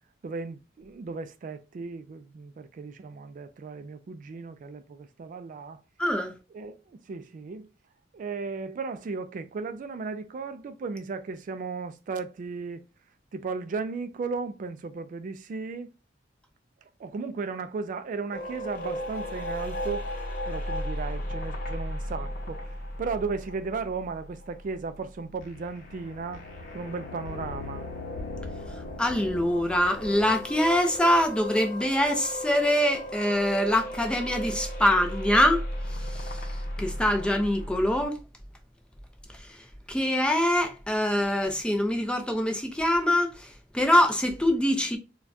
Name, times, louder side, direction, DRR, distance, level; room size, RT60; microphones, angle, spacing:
voice 1, 0.2-5.8 6.5-7.7 8.1-12.8 13.3-15.9 17.0-20.1 20.5-22.6 23.0-26.4 26.7-27.9, right 4 dB, 45° right, 0.3 m, -35 dB
voice 2, 6.0-6.3 29.0-35.6 35.9-36.5 36.8-38.2 39.4-39.6 39.9-45.0, left 1 dB, 5° left, 0.5 m, -24 dB
sound 1, 18.3-25.1 25.4-38.1, equal, 50° left, 0.9 m, -36 dB
4.2 x 2.3 x 2.6 m
head